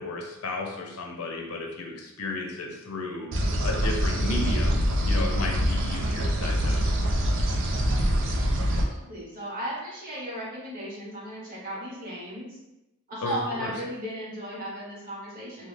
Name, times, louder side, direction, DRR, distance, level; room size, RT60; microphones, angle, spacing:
voice 1, 0.0-3.3 3.6-6.9 13.2-13.7, left 2 dB, 90° left, 1 dB, 0.6 m, -33 dB
sound 1, 3.3-8.8, equal, 60° right, 0.4 m, -25 dB
voice 2, 8.6-12.6 13.1-15.7, equal, 40° right, -6 dB, 1.1 m, -36 dB
2.4 x 2.3 x 3.2 m, 0.93 s
head